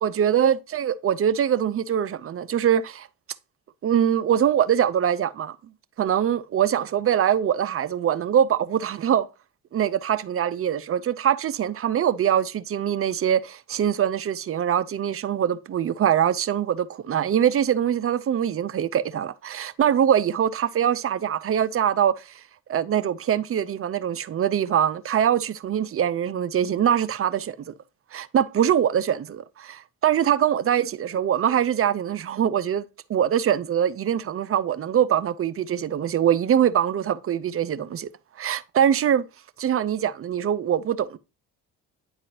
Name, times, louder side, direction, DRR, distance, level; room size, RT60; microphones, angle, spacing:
voice 1, 0.0-3.1 3.8-5.6 6.0-9.3 9.7-22.3 22.7-27.7 28.1-32.8 33.1-38.1 38.4-39.2 39.6-41.2, right 9 dB, 30° right, 0.6 m, -23 dB
9.8 x 4.7 x 2.8 m
figure-of-eight pair, 45°, 46 cm